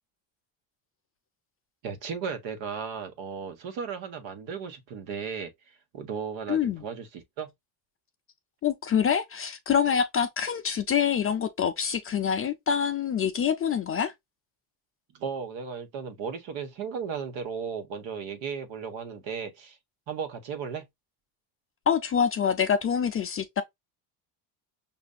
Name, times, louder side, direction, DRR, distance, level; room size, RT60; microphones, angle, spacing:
voice 1, 1.8-7.5 15.1-19.8 20.1-20.9, right 6 dB, 70° right, 1.1 m, -35 dB
voice 2, 6.5-6.8 8.6-14.1 21.9-23.6, left 7 dB, 30° left, 0.4 m, -26 dB
5.5 x 2.6 x 2.2 m
supercardioid pair, 95°, 48 cm